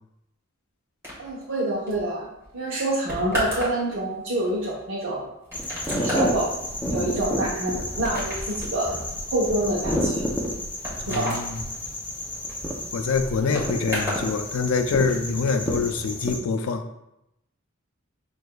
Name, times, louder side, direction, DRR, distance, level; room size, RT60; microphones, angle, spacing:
sound 1, 1.0-14.3 14.6-15.2, equal, 10° right, 1.3 m, -35 dB
voice 1, 1.2-2.3 2.5-5.2 6.0-6.5 6.9-8.9 9.3-10.3 11.1-11.4, right 1 dB, 65° right, -5 dB, 0.8 m, -26 dB
sound 2, 5.5-16.4, equal, 10° left, 0.5 m, -30 dB
voice 2, 11.0-11.6 12.9-16.8, left 4 dB, 80° left, 7 dB, 0.4 m, -25 dB
6.4 x 2.6 x 2.2 m, 0.85 s
head